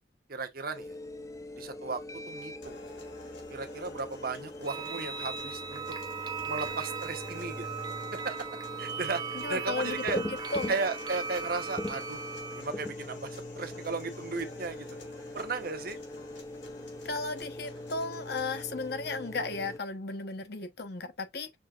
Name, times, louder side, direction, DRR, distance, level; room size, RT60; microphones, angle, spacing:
voice 1, 0.3-1.0 1.6-2.8 3.5-5.8 6.5-7.7 8.1-10.2 10.7-12.2 12.5-13.3 13.6-14.9 15.3-16.0, right 4 dB, 55° right, 0.9 m, -35 dB
sound 1, 0.7-19.8, left 1 dB, 15° left, 0.4 m, -42 dB
sound 2, 2.6-18.6, left 2 dB, 85° left, 2.5 m, -51 dB
sound 3, 4.7-12.6, right 5 dB, 25° right, 0.7 m, -38 dB
voice 2, 9.3-10.7 17.0-21.6, left 3 dB, 60° left, 1.0 m, -35 dB
6.3 x 3.4 x 2.4 m
head